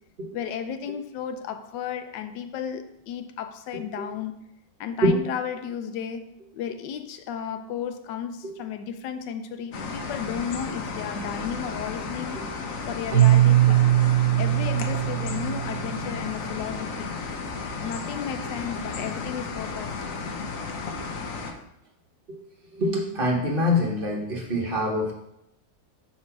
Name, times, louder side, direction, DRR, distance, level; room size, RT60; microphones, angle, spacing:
voice 1, 0.3-4.4 4.8-12.4 12.9-13.9 14.4-17.1 17.8-19.9, left 8 dB, 85° left, 1.2 m, -34 dB
sound 1, 9.7-21.5, left 4 dB, 60° left, 1.0 m, -33 dB
Keyboard (musical), 13.1-16.1, right 13 dB, 70° right, 1.3 m, -20 dB
voice 2, 22.7-25.1, left 1 dB, 40° right, 0.9 m, -24 dB
4.7 x 4.3 x 5.7 m
omnidirectional pair, 1.9 m